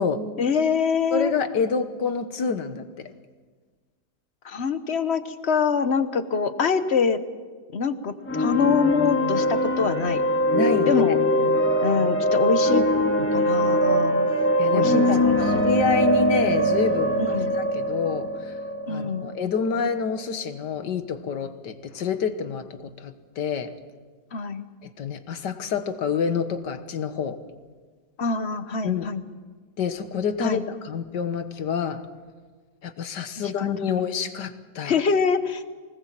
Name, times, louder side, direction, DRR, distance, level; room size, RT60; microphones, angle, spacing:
voice 1, 0.4-1.3 4.4-7.2 7.7-10.2 10.9-11.2 11.8-12.8 13.3-14.3 14.7-15.7 17.2-17.5 18.9-19.3 24.3-24.6 28.2-29.2 30.4-30.6 33.4-33.7 34.8-35.6, left 5 dB, 45° left, 11 dB, 1.1 m, -25 dB
voice 2, 1.1-2.8 10.5-11.0 14.6-15.0 15.5-18.5 18.9-23.7 24.8-27.4 28.8-29.1 29.8-32.0 32.8-35.0, left 5 dB, 80° left, 9 dB, 1.9 m, -27 dB
sound 1, 8.3-19.9, equal, 5° left, 1.7 m, -22 dB
24.0 x 19.5 x 7.6 m, 1.5 s
omnidirectional pair, 1.8 m